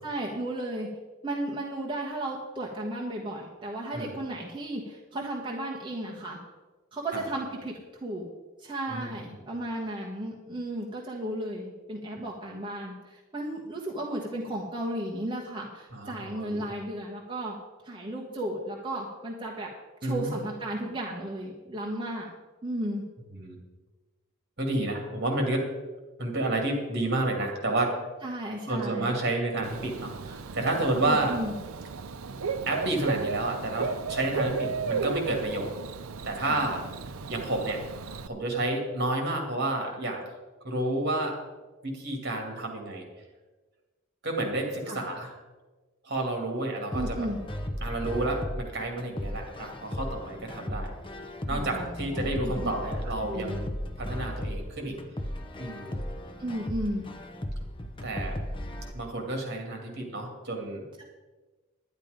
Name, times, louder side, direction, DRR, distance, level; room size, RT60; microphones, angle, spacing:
voice 1, 0.0-0.9 1.2-6.4 6.9-7.7 8.0-8.3 8.6-17.5 17.8-19.7 20.0-22.3 22.6-23.0 28.2-29.1 31.0-31.5 36.4-36.7 44.9-45.2 46.9-47.4 51.5-52.7 53.2-53.7 56.4-57.1 61.0-61.1, right 1 dB, 25° right, -3 dB, 1.3 m, -34 dB
voice 2, 8.9-9.4 15.9-16.7 20.0-20.4 23.3-23.6 24.6-25.7 26.2-28.0 28.7-31.4 32.7-35.7 36.2-37.0 37.3-37.8 38.3-40.2 40.6-41.4 41.8-43.1 44.2-45.3 46.0-47.3 47.8-50.9 51.5-53.7 54.0-55.0 55.6-56.0 58.0-58.4 58.9-60.9, right 2 dB, 50° right, 2 dB, 2.5 m, -30 dB
Bird / Cricket, 29.6-38.3, right 4 dB, 80° right, 0.6 m, -34 dB
sound 1, 46.9-58.9, equal, 25° left, 0.8 m, -36 dB
11.0 x 10.5 x 5.1 m, 1.3 s
head